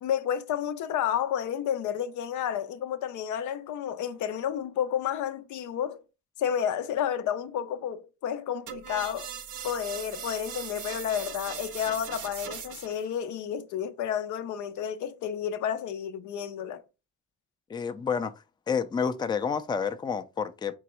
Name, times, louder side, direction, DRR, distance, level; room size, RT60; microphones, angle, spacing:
voice 1, 0.0-6.0 6.4-9.3 9.6-16.8, left 9 dB, 75° left, 0.5 m, -31 dB
sound 1, 8.7-13.1, right 9 dB, 75° right, 0.7 m, -39 dB
voice 2, 17.7-18.3 18.7-20.8, left 6 dB, 15° left, 0.4 m, -29 dB
3.9 x 3.4 x 3.0 m
cardioid pair, 90°, 30 cm